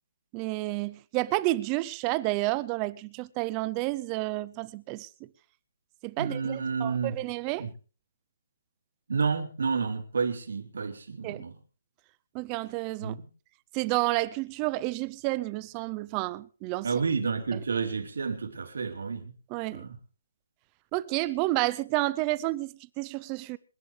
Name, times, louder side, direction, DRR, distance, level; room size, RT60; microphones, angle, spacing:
voice 1, 0.3-5.1 6.0-7.7 11.2-11.4 12.3-13.2 13.7-16.9 17.5-17.6 19.5-19.8 20.9-23.6, right 19 dB, 20° right, 0.6 m, -30 dB
voice 2, 6.2-7.1 7.6-7.7 9.1-11.6 13.0-13.3 16.8-19.3 19.7-20.0, right 5 dB, 75° right, 3.6 m, -30 dB
27.0 x 11.0 x 3.3 m
hypercardioid pair, 170°, 0 cm